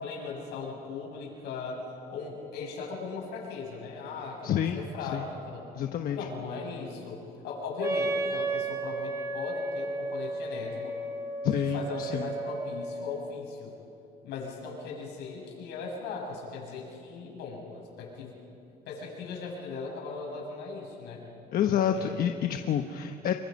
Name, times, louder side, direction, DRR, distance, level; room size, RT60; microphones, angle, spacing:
voice 1, 0.0-5.7 6.1-11.0 11.5-13.7 14.2-18.4 18.9-21.2 21.9-22.1 22.5-22.6, left 4 dB, 85° left, -2 dB, 7.5 m, -38 dB
voice 2, 4.4-5.3 5.7-6.2 11.4-12.3 21.5-23.3, left 9 dB, 60° left, 6 dB, 1.1 m, -28 dB
Wind instrument woodwind instrument, 7.8-13.4, right 2 dB, 15° right, 2.5 m, -33 dB
27.5 x 25.0 x 5.4 m, 2.7 s
cardioid pair, 110°, 17 cm